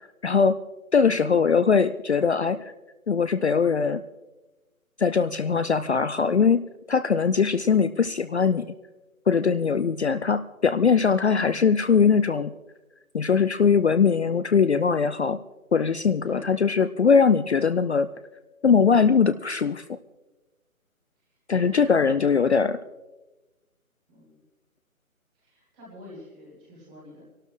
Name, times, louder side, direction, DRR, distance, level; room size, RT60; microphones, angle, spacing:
voice 1, 0.2-0.6 0.9-2.7 3.1-4.0 5.0-6.6 6.9-8.6 9.3-12.5 13.1-15.4 15.7-18.1 18.6-19.8 21.5-22.8, left 6 dB, 55° left, 12 dB, 0.4 m, -21 dB
voice 2, 1.0-1.3 16.3-16.5 21.2-22.4 24.1-24.4 25.3-27.2, equal, 5° right, -5 dB, 0.9 m, -47 dB
24.0 x 12.5 x 3.1 m, 1.1 s
figure-of-eight pair, 160°, 42 cm